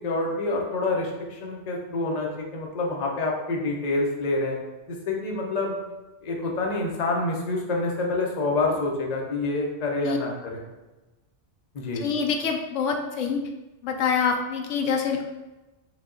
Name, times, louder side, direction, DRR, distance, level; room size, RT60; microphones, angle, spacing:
voice 1, 0.0-4.6 4.9-5.7 6.2-10.6 11.7-12.1, left 2 dB, 40° left, 0 dB, 0.7 m, -27 dB
voice 2, 11.9-13.4 13.8-15.3, left 6 dB, 90° left, 4 dB, 1.0 m, -26 dB
5.0 x 2.3 x 3.7 m, 1.1 s
omnidirectional pair, 1.2 m